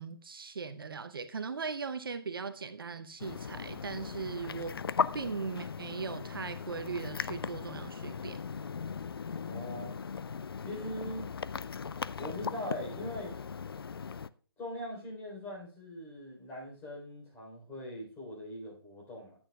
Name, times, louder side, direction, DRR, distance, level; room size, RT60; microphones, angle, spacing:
voice 1, 0.0-4.8 5.1-8.4, right 5 dB, 65° right, 10 dB, 0.7 m, -39 dB
sound 1, 3.2-14.3, left 6 dB, 70° left, 0.4 m, -38 dB
voice 2, 9.4-10.0 10.6-11.3 12.2-13.3 14.6-19.4, left 1 dB, 15° left, -2 dB, 3.7 m, -41 dB
14.5 x 8.7 x 2.3 m, 0.41 s
figure-of-eight pair, 135°, 13 cm